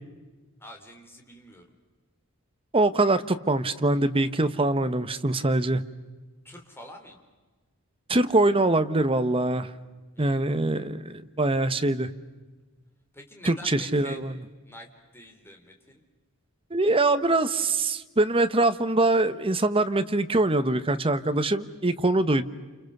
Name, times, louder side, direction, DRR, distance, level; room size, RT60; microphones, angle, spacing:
voice 1, 0.6-1.6 6.4-7.2 10.1-10.5 13.1-14.3 14.6-16.0, left 1 dB, 10° left, 3 dB, 3.8 m, -46 dB
voice 2, 2.7-5.8 8.1-9.7 10.2-12.1 13.4-14.3 16.7-22.4, right 2 dB, 25° right, 11 dB, 1.1 m, -23 dB
29.5 x 29.0 x 6.7 m, 1.3 s
head